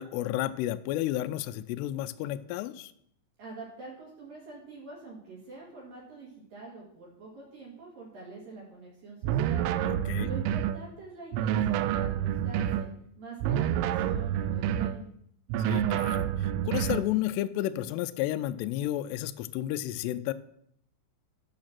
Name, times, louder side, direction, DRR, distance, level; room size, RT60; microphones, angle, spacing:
voice 1, 0.0-2.9 9.8-10.3 15.7-20.3, left 14 dB, 85° left, 11 dB, 2.5 m, -32 dB
voice 2, 3.4-9.6 10.2-12.9 13.2-15.1, right 3 dB, 60° right, -4 dB, 3.3 m, -45 dB
sound 1, 9.2-10.8 11.3-12.9 13.4-15.0 15.5-17.1, right 10 dB, 90° right, 2.3 m, -28 dB
8.9 x 6.4 x 5.9 m, 0.71 s
omnidirectional pair, 5.1 m